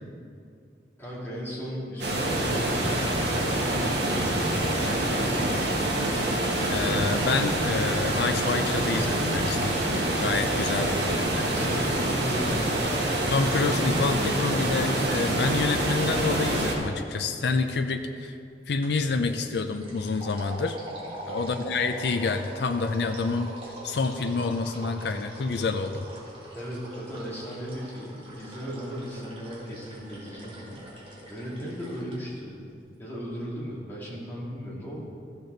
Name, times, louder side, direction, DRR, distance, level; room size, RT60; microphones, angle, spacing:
voice 1, 1.0-4.5 4.8-5.6 10.7-10.9 11.5-13.0 21.3-21.6 26.5-30.8 31.3-32.6 33.0-35.0, equal, 10° left, -7 dB, 2.3 m, -37 dB
sound 1, 2.0-16.7, right 1 dB, 70° right, 1.5 m, -26 dB
voice 2, 6.7-9.8 10.2-11.5 13.3-18.4 18.7-20.8 21.3-23.5 23.8-26.1, left 4 dB, 65° left, 6 dB, 0.5 m, -28 dB
sound 2, 18.8-19.0 19.3-32.2, right 1 dB, 30° right, 1.8 m, -43 dB
14.0 x 6.8 x 3.9 m, 2.4 s
head